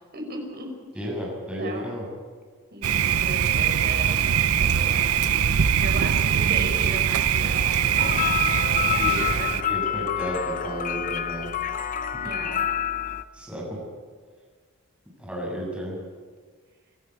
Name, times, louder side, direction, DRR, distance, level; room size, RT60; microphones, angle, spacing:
voice 1, 0.1-0.7 1.6-1.9 2.7-4.1 4.4-5.4 5.7-9.5 12.2-12.6 13.4-13.5, right 2 dB, 45° right, 2 dB, 5.3 m, -37 dB
voice 2, 0.9-2.0 7.8-8.3 8.8-9.2 9.5-11.5 13.3-13.8 15.2-16.0, equal, 5° right, -4 dB, 8.0 m, -33 dB
Thunder, 2.8-9.6, right 8 dB, 80° right, 0.6 m, -22 dB
sound 1, 8.0-13.2, left 10 dB, 35° left, 0.8 m, -28 dB
26.5 x 13.0 x 8.6 m, 1.6 s
head